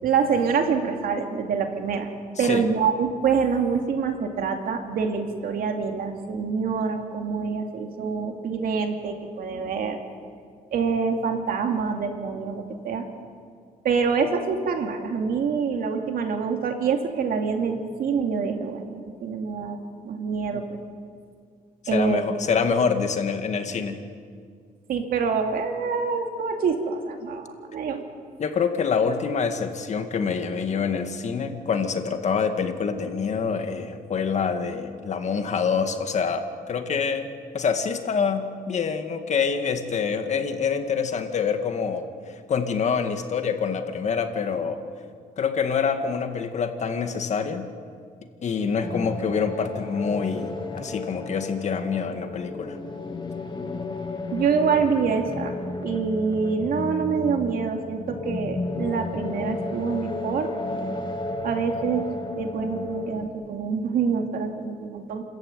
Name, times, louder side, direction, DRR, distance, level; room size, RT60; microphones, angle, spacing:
voice 1, 0.0-2.1 2.4-10.0 10.7-13.0 13.8-19.8 20.0-20.8 21.9-22.2 24.9-28.0 54.3-55.5 55.8-60.5 61.4-62.1 62.4-65.2, right 5 dB, 75° right, 4 dB, 2.4 m, -26 dB
voice 2, 21.9-24.0 28.4-37.3 37.5-42.1 42.5-44.8 45.4-47.7 48.4-52.8, left 6 dB, 50° left, 7 dB, 1.9 m, -26 dB
sound 1, 48.8-63.3, left 3 dB, 30° left, 1.9 m, -33 dB
30.0 x 14.0 x 9.3 m, 2.1 s
cardioid pair, 125°, 15 cm